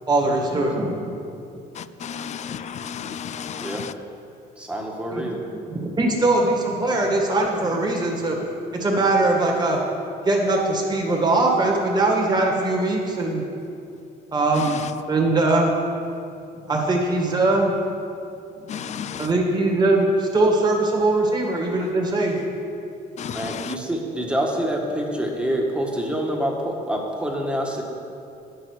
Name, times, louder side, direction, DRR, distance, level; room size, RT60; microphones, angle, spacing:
voice 1, 0.1-1.0 5.1-5.2 6.0-8.4 8.8-9.8 10.2-13.4 14.3-14.8 15.1-15.7 16.7-17.7 19.2-22.4, right 2 dB, 25° right, 1.9 m, -21 dB
voice 2, 1.7-3.9 14.5-15.0 18.7-19.3 23.2-23.7, left 8 dB, 45° left, 0.4 m, -33 dB
voice 3, 4.6-5.4 23.3-27.8, equal, 5° right, 1.5 m, -26 dB
9.6 x 6.7 x 6.5 m
cardioid pair, 110°, 17 cm